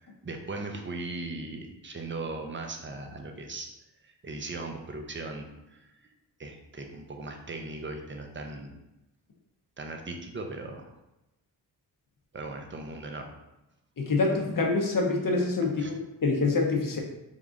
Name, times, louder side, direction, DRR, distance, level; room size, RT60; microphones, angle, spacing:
voice 1, 0.0-3.7 4.0-6.1 6.4-8.7 9.8-10.9 12.3-13.2 15.8-15.9, right 2 dB, 25° right, 3 dB, 0.7 m, -38 dB
voice 2, 14.0-17.0, left 3 dB, 45° left, 1 dB, 1.0 m, -26 dB
3.6 x 2.3 x 3.8 m, 0.96 s
supercardioid pair, 40°, 47 cm